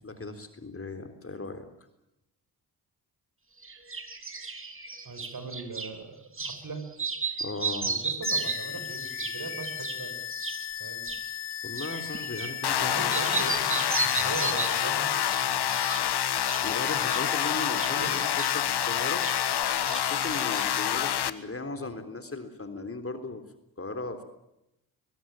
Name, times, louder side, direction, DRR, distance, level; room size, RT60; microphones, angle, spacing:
voice 1, 0.0-1.7 7.4-7.9 11.6-13.5 16.6-19.3 19.8-23.4 23.8-24.2, left 3 dB, 30° left, 7 dB, 3.6 m, -37 dB
sound 1, 3.6-5.9 6.3-6.6 6.9-12.8 13.1-14.9 15.3-16.1 16.3-19.6 19.9-20.9, right 4 dB, 25° right, 3.2 m, -35 dB
voice 2, 5.0-6.8 7.8-10.2 10.8-11.1 12.8-15.1 15.4-15.7 17.9-18.1 21.8-22.0, right 4 dB, 45° right, 7 dB, 6.2 m, -40 dB
sound 2, 8.2-19.6, left 12 dB, 70° left, 2.3 m, -37 dB
sound 3, 12.6-21.3, left 10 dB, 55° left, 1.4 m, -27 dB
22.0 x 20.5 x 9.1 m, 0.87 s
hypercardioid pair, 40°, 46 cm